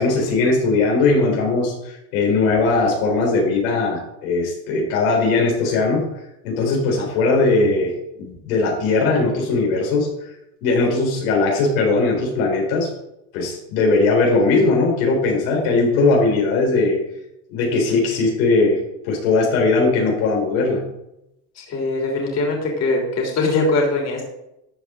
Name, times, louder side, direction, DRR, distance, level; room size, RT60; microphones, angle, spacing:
voice 1, 0.0-6.1 6.4-7.9 8.2-10.1 10.6-12.9 13.3-17.0 17.5-20.9, left 3 dB, 85° left, -1 dB, 3.9 m, -19 dB
voice 2, 21.6-24.2, left 2 dB, 40° left, 0 dB, 3.3 m, -21 dB
13.5 x 8.0 x 3.7 m, 0.86 s
supercardioid pair, 125°, 41 cm